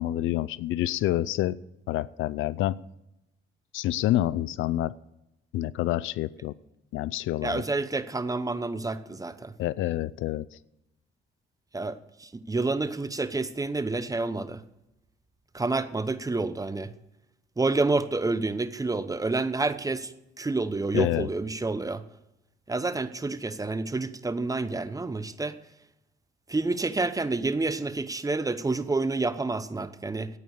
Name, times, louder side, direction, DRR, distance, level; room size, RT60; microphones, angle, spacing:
voice 1, 0.0-1.6 1.9-2.8 3.7-4.9 5.5-6.5 6.9-7.6 9.6-10.5 20.9-21.3, left 14 dB, 80° left, 20 dB, 0.5 m, -27 dB
voice 2, 7.4-9.5 11.7-14.6 15.5-16.9 17.6-20.1 20.4-22.0 22.7-25.5 26.5-30.3, right 3 dB, 15° right, 13 dB, 0.9 m, -29 dB
14.5 x 9.3 x 6.5 m, 0.88 s
cardioid pair, 90°, 20 cm